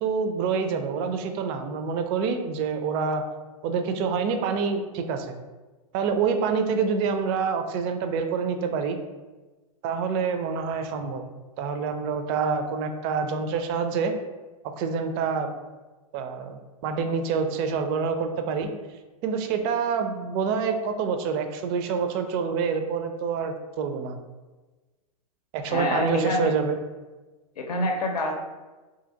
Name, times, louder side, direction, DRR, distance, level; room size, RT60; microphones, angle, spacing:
voice 1, 0.0-3.2 3.6-5.4 5.9-9.0 9.8-11.2 11.6-14.1 14.8-15.5 16.1-18.7 19.2-24.2 25.5-26.8, right 5 dB, 40° right, 7 dB, 0.4 m, -27 dB
voice 2, 25.6-26.5 27.6-28.3, left 1 dB, 90° left, 2 dB, 0.6 m, -26 dB
2.7 x 2.7 x 3.7 m, 1.2 s
hypercardioid pair, 125°, 19 cm